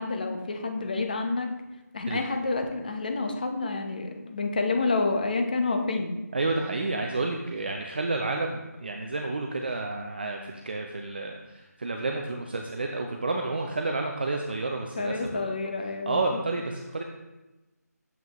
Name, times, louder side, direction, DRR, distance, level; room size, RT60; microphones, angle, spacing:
voice 1, 0.0-1.5 1.9-6.2 15.0-16.4, left 3 dB, 30° left, 5 dB, 0.7 m, -29 dB
voice 2, 6.3-15.5 16.1-17.0, right 3 dB, 35° right, 2 dB, 0.5 m, -30 dB
7.5 x 5.6 x 3.0 m, 1.1 s
figure-of-eight pair, 175°, 9 cm